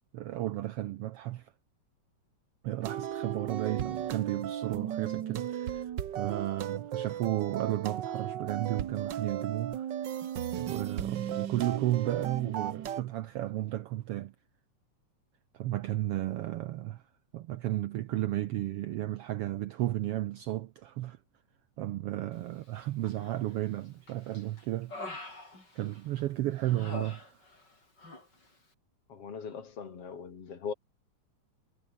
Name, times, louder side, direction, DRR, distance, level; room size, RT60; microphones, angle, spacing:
voice 1, 0.1-1.5 2.6-9.9 10.6-14.3 15.5-17.0 17.3-21.2 21.8-24.9 25.7-27.3, right 15 dB, 75° right, 1.4 m, -33 dB
sound 1, 2.8-13.0, right 10 dB, 60° right, 1.2 m, -35 dB
Human voice, 23.0-23.7 24.1-26.2 26.6-27.7 28.0-28.3, left 2 dB, 35° left, 7.9 m, -44 dB
voice 2, 29.1-30.7, left 6 dB, 55° left, 3.4 m, -40 dB
omnidirectional pair, 3.4 m